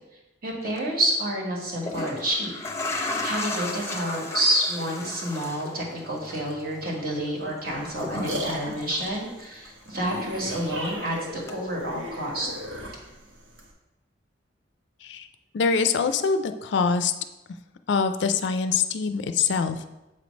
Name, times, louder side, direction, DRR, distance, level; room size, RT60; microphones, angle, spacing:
voice 1, 0.4-2.5 3.2-12.5, right 1 dB, 55° right, -2 dB, 1.6 m, -28 dB
sound 1, 0.6-0.8 1.6-9.7 10.0-11.0 11.5-11.6, left 2 dB, 15° left, 0.6 m, -35 dB
sound 2, 7.7-13.7, equal, 90° right, 1.1 m, -36 dB
voice 2, 15.5-17.1 17.9-19.9, left 5 dB, 70° left, 9 dB, 0.4 m, -24 dB
7.2 x 3.2 x 5.2 m, 0.98 s
head